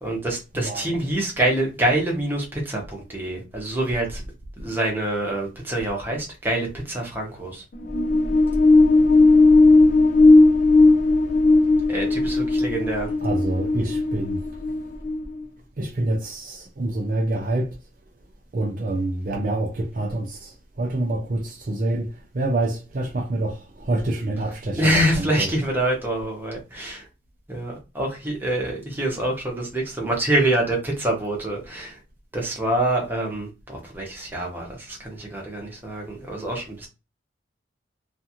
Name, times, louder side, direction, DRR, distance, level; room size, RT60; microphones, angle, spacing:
voice 1, 0.0-4.2 4.6-7.6 11.9-13.1 24.7-27.1 27.5-32.0 32.3-36.9, right 1 dB, 10° right, 0.8 m, -26 dB
sound 1, 7.7-15.4, left 2 dB, 40° left, 0.4 m, -17 dB
voice 2, 13.2-14.4 15.8-17.7 18.5-25.5, right 2 dB, 45° right, 0.5 m, -27 dB
2.5 x 2.4 x 2.8 m
head